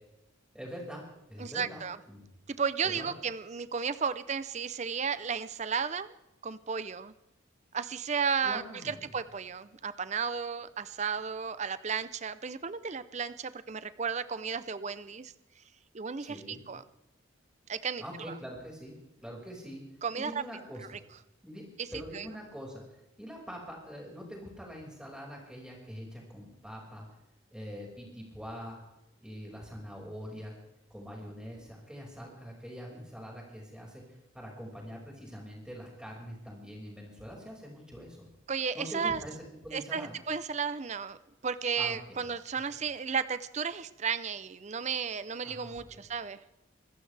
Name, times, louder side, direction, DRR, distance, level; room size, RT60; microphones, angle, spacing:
voice 1, 0.5-2.2 2.8-3.1 8.4-9.1 16.2-16.6 18.0-19.9 20.2-21.0 21.4-27.1 27.5-28.8 29.2-30.5 30.9-38.3 38.7-39.4 39.6-40.2 41.8-42.2 42.7-42.8 45.4-46.0, equal, 5° right, -2 dB, 5.3 m, -44 dB
voice 2, 1.4-2.0 2.5-6.1 6.4-7.1 7.7-15.3 15.9-16.8 17.7-18.0 20.0-20.4 21.8-21.9 22.1-22.3 38.5-39.2 39.7-41.2 41.4-46.4, right 6 dB, 35° right, 14 dB, 0.5 m, -33 dB
25.5 x 14.5 x 3.4 m, 0.90 s
head